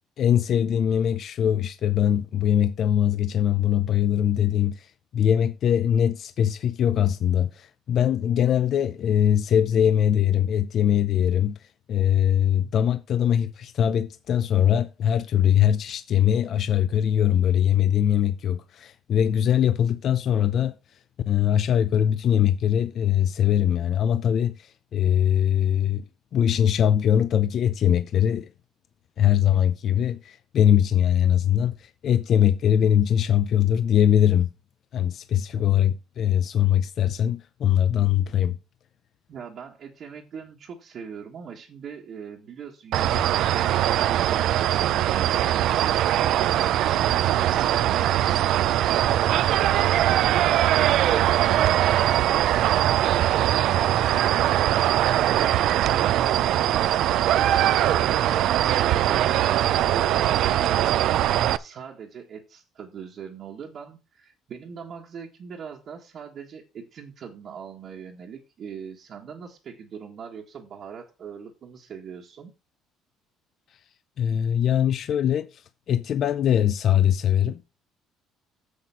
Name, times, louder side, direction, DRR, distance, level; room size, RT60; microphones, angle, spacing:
voice 1, 0.2-11.6 11.9-20.8 21.3-26.0 26.3-28.5 29.2-34.5 34.9-38.6 74.2-75.6 75.9-77.6, left 10 dB, 45° left, 0.5 m, -22 dB
voice 2, 39.3-46.1 46.4-61.2 61.6-72.5, right 7 dB, 40° right, 1.5 m, -41 dB
sound 1, 42.9-61.6, right 12 dB, 60° right, 0.5 m, -21 dB
7.4 x 6.5 x 5.6 m
cardioid pair, 155°, 0 cm